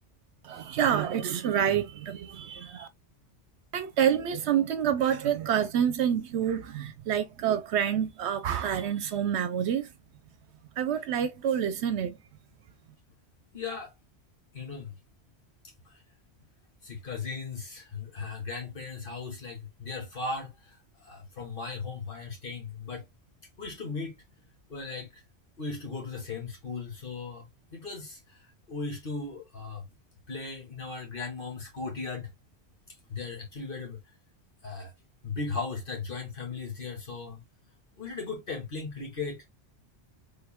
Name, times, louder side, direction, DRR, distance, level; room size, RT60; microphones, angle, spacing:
voice 1, 0.4-2.9 3.7-9.9 10.8-12.2, right 9 dB, 70° right, 0.9 m, -27 dB
voice 2, 13.5-13.9 14.5-14.9 15.8-16.0 16.8-23.0 23.6-24.2 24.7-25.2 25.6-29.8 30.3-32.3 32.9-34.0 34.6-34.9 35.2-37.4 38.0-39.4, left 4 dB, 50° left, 1.6 m, -37 dB
3.5 x 3.5 x 2.2 m
omnidirectional pair, 1.2 m